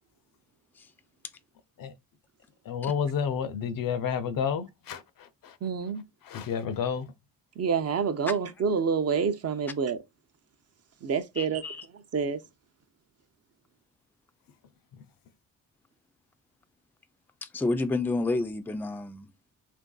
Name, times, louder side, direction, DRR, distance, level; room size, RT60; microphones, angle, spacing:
voice 1, 2.7-5.6 6.2-7.1, left 7 dB, 70° left, 0.6 m, -30 dB
voice 2, 5.6-6.0 7.6-10.0 11.0-11.6 12.1-12.4, right 6 dB, 45° right, 0.5 m, -27 dB
voice 3, 11.4-11.8 17.4-19.3, left 2 dB, 5° left, 0.3 m, -30 dB
3.1 x 2.5 x 2.2 m
cardioid pair, 95°, 35 cm